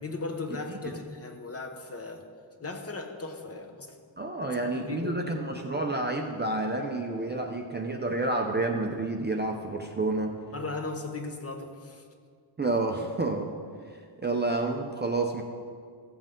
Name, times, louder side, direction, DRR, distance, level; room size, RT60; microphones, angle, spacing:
voice 1, 0.0-2.3 2.6-4.0 4.6-5.3 10.5-12.0, left 3 dB, 30° left, 4 dB, 0.9 m, -37 dB
voice 2, 4.2-10.4 12.6-13.5 13.9-15.4, right 2 dB, 20° right, 2 dB, 0.6 m, -29 dB
15.0 x 7.5 x 3.7 m, 2.1 s
wide cardioid pair, 140°, 49 cm